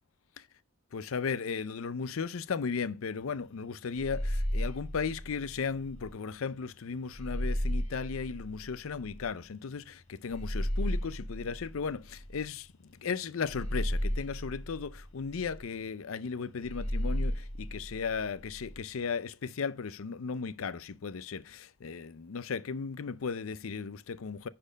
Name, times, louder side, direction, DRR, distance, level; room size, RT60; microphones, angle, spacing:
voice 1, 0.9-24.5, left 5 dB, 80° left, 0.5 m, -36 dB
sound 1, 4.0-6.1 7.1-9.3 10.3-12.6 13.5-15.6 16.6-18.8, equal, 30° left, 1.3 m, -34 dB
10.5 x 4.4 x 5.0 m
head